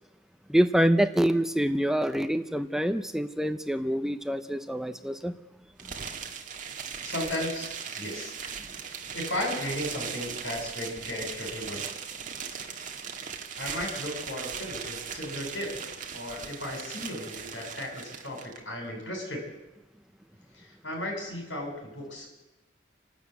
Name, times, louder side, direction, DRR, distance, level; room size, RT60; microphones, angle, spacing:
voice 1, 0.5-5.3, equal, 5° right, 10 dB, 0.7 m, -26 dB
sound 1, 5.8-18.6, right 6 dB, 45° right, 1.9 m, -38 dB
voice 2, 7.0-7.7 8.0-8.3 9.1-11.9 13.6-19.4 20.5-22.3, left 1 dB, 85° left, 1 dB, 7.9 m, -35 dB
29.5 x 12.5 x 8.3 m, 1.0 s
head